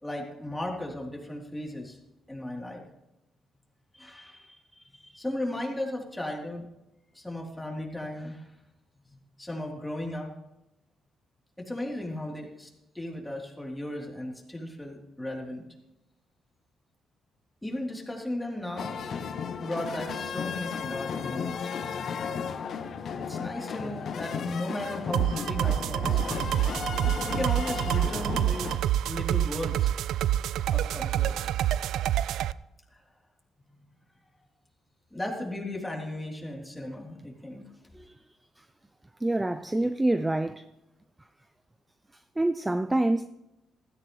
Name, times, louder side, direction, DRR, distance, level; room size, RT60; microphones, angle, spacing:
voice 1, 0.0-2.0 2.3-2.8 3.9-6.6 7.1-8.5 9.0-10.3 11.6-15.6 17.6-19.0 19.6-21.7 23.2-26.2 27.2-28.8 29.0-29.9 30.7-31.4 32.9-33.0 35.1-37.6, left 1 dB, 10° left, 3.4 m, -36 dB
sound 1, 18.8-28.8, left 6 dB, 60° left, 0.9 m, -34 dB
sound 2, 25.1-32.5, right 12 dB, 80° right, 0.4 m, -27 dB
voice 2, 39.2-40.7 42.4-43.3, right 1 dB, 15° right, 0.5 m, -26 dB
16.0 x 14.0 x 3.2 m
cardioid pair, 90°, 0 cm